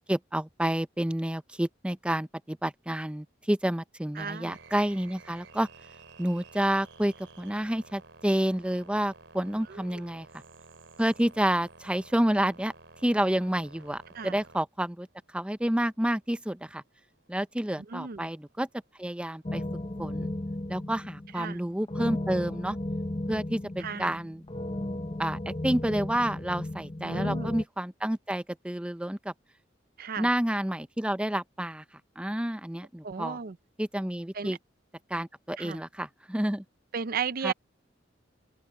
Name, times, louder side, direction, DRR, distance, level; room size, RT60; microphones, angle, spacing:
voice 1, 0.1-5.7 6.2-10.3 11.0-12.7 13.0-15.1 15.3-16.8 17.3-18.7 19.0-19.6 20.0-20.3 20.7-22.8 23.3-24.4 25.2-29.3 30.2-31.8 32.2-33.4 33.8-34.6 35.1-36.6 37.4-37.5, right 1 dB, 5° right, 0.6 m, -29 dB
voice 2, 4.2-4.6 9.7-10.0 14.1-14.4 17.9-18.3 21.4-21.6 23.8-24.2 27.0-27.6 30.0-30.3 33.0-33.6 34.3-34.6 35.6-35.8 36.9-37.5, right 6 dB, 50° right, 0.5 m, -35 dB
sound 1, 4.5-20.4, right 3 dB, 75° right, 3.5 m, -54 dB
sound 2, 19.5-27.6, left 1 dB, 30° left, 1.0 m, -34 dB
open air
head